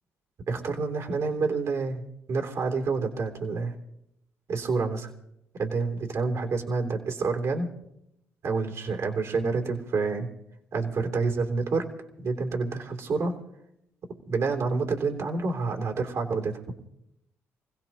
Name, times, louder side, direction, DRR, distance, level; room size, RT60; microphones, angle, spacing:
voice 1, 0.5-3.7 4.5-5.1 5.6-7.7 8.4-10.3 10.7-11.9 12.2-13.3 14.3-16.6, right 4 dB, 60° right, 3 dB, 3.0 m, -28 dB
26.5 x 17.0 x 3.0 m, 0.78 s
cardioid pair, 75°, 6 cm